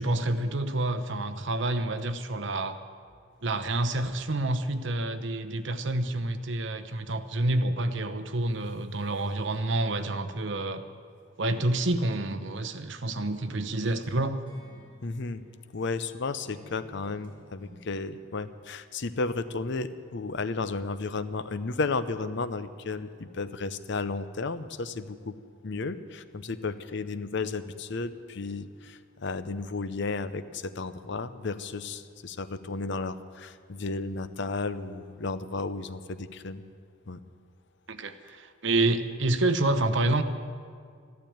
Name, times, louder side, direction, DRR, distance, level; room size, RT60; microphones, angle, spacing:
voice 1, 0.0-2.8 3.4-10.8 11.4-14.4 37.9-40.2, right 2 dB, 65° right, 10 dB, 0.9 m, -28 dB
sound 1, 12.8-12.9 13.2-16.1 16.4-17.8, equal, 25° right, 4.7 m, -54 dB
voice 2, 15.0-15.4 15.7-25.3 25.6-36.6 37.1-37.2, left 3 dB, 60° left, 13 dB, 0.7 m, -33 dB
13.5 x 12.0 x 8.7 m, 2.1 s
head